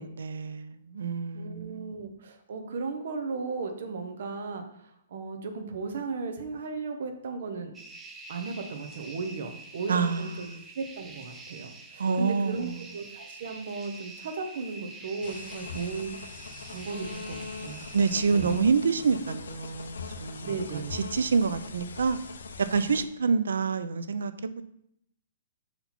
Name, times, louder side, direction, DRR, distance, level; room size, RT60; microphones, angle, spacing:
voice 1, 0.0-1.9 9.9-10.6 12.0-12.8 15.7-15.9 17.9-22.2 22.6-24.6, right 5 dB, 85° right, 12 dB, 0.5 m, -27 dB
voice 2, 1.3-7.7 8.3-10.5 10.7-16.3 16.7-17.8 18.3-18.6 20.4-21.0, right 4 dB, 45° right, 6 dB, 0.8 m, -36 dB
sound 1, 7.7-18.6, right 3 dB, 10° right, 0.4 m, -46 dB
sound 2, 15.2-23.0, left 4 dB, 85° left, 0.7 m, -41 dB
5.5 x 4.4 x 4.1 m, 0.75 s
hypercardioid pair, 180°, 0 cm